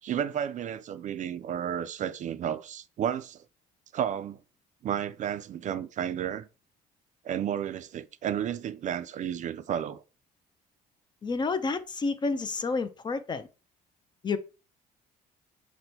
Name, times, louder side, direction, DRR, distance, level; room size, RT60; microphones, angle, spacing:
voice 1, 0.0-3.4 3.9-4.4 4.8-6.5 7.2-10.0, right 9 dB, 45° right, 0.4 m, -32 dB
voice 2, 11.2-13.5 14.2-14.4, left 4 dB, 25° left, 0.4 m, -29 dB
5.9 x 2.2 x 2.7 m
cardioid pair, 110°, 17 cm